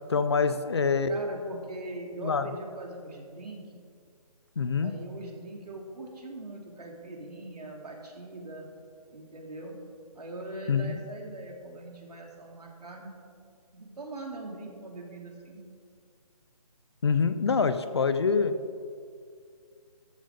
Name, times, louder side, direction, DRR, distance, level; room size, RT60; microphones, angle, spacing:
voice 1, 0.1-1.1 2.2-2.5 4.6-4.9 10.7-11.0 17.0-18.6, left 5 dB, 45° left, 12 dB, 0.6 m, -25 dB
voice 2, 1.1-3.8 4.8-8.7 9.1-9.8 10.1-13.1 13.7-15.6, right 2 dB, 85° right, 0 dB, 3.0 m, -41 dB
13.5 x 7.8 x 5.1 m, 2.2 s
hypercardioid pair, 170°, 20 cm